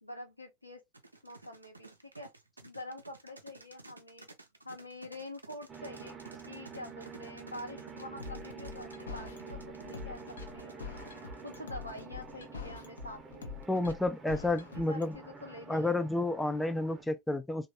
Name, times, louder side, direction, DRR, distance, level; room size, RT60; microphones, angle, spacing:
voice 1, 0.0-0.8 1.2-2.3 2.6-4.3 4.6-9.6 9.8-10.9 11.4-13.6 14.7-16.0, left 1 dB, 90° left, 0.9 m, -46 dB
sound 1, 0.9-12.4, right 2 dB, 80° right, 0.5 m, -53 dB
sound 2, 5.7-17.0, right 5 dB, 15° right, 0.7 m, -48 dB
sound 3, 8.2-15.2, left 5 dB, 70° left, 0.6 m, -44 dB
voice 2, 13.7-15.2 15.7-17.7, left 2 dB, 5° left, 0.3 m, -30 dB
3.1 x 2.4 x 2.7 m
figure-of-eight pair, 90°, 0 cm